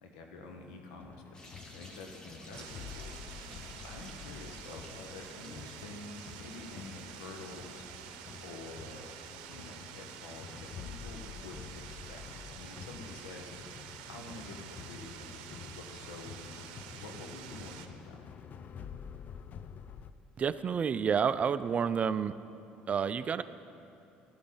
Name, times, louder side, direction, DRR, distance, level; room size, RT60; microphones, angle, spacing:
voice 1, 0.0-3.2 3.8-7.8 8.4-9.1 9.5-13.8 14.1-18.3, left 3 dB, 90° left, 3 dB, 1.4 m, -48 dB
sound 1, 1.0-20.1, left 7 dB, 45° left, 0.5 m, -49 dB
sound 2, 1.3-8.6, equal, 20° left, 2.0 m, -54 dB
sound 3, 2.5-17.9, right 9 dB, 85° right, 0.7 m, -48 dB
voice 2, 20.4-22.3 22.9-23.4, right 7 dB, 35° right, 14 dB, 0.4 m, -29 dB
13.0 x 12.0 x 4.0 m, 2.7 s
supercardioid pair, 85°, 4 cm